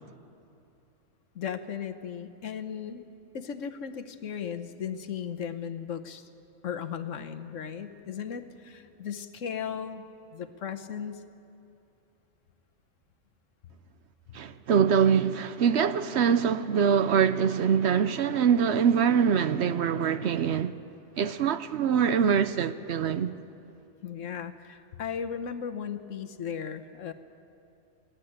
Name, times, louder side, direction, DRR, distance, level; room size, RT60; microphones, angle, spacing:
voice 1, 1.3-3.0 3.3-6.3 6.6-11.2 24.0-27.1, left 7 dB, 75° left, 1.3 m, -36 dB
voice 2, 14.3-20.7 21.2-23.3, right 7 dB, 65° right, 0.9 m, -24 dB
28.5 x 12.0 x 8.7 m
omnidirectional pair, 1.3 m